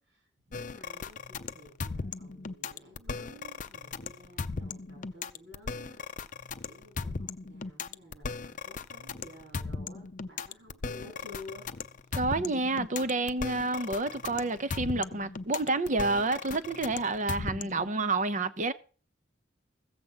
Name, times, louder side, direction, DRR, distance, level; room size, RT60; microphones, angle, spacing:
voice 1, 0.0-6.0 6.6-11.7, left 1 dB, 75° right, 5.0 m, -52 dB
sound 1, 0.5-17.9, left 4 dB, 45° left, 0.6 m, -37 dB
voice 2, 12.1-18.7, right 3 dB, 45° right, 0.8 m, -29 dB
15.0 x 7.7 x 5.7 m
head